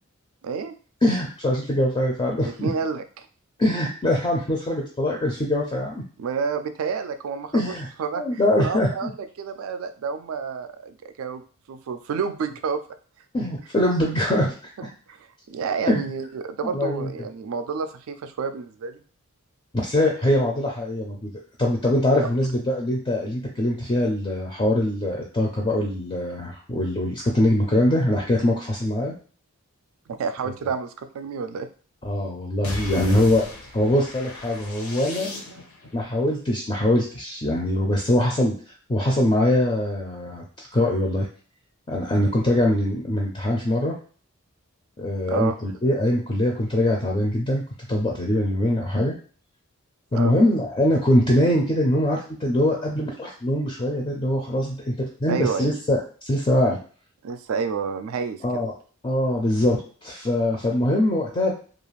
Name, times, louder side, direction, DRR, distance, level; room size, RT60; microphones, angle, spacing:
voice 1, 0.4-0.7 2.4-3.3 6.2-7.7 8.0-11.4 11.7-12.8 14.8-19.0 30.1-31.7 45.3-45.6 50.1-50.3 55.3-55.7 57.2-58.6, right 5 dB, 70° right, 9 dB, 0.3 m, -29 dB
voice 2, 1.0-2.7 3.6-6.0 7.5-7.9 8.2-9.1 13.3-14.7 15.9-16.1 16.6-17.1 19.7-21.3 21.6-29.1 32.0-33.5 33.7-35.3 35.9-38.5 38.9-41.3 41.9-44.0 45.0-47.6 47.9-49.2 50.1-56.8 58.4-58.7 59.0-61.5, left 1 dB, 25° left, -1 dB, 0.4 m, -23 dB
sound 1, 32.6-35.9, left 2 dB, 80° left, 0.7 m, -36 dB
2.4 x 2.4 x 3.1 m, 0.41 s
head